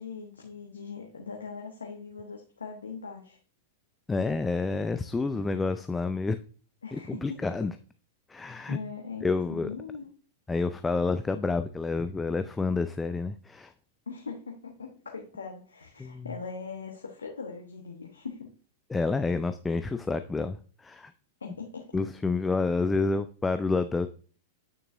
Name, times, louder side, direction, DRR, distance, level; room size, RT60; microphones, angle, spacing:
voice 1, 0.0-3.4 6.8-7.2 8.7-10.1 14.1-18.5 21.4-21.8, left 5 dB, 75° left, 1 dB, 1.1 m, -40 dB
voice 2, 4.1-6.4 6.9-7.7 8.3-8.8 9.2-9.7 10.5-13.7 16.0-16.3 18.9-21.1 21.9-24.1, left 3 dB, 10° left, 10 dB, 0.4 m, -29 dB
8.7 x 6.7 x 2.6 m, 0.39 s
figure-of-eight pair, 95°, 0 cm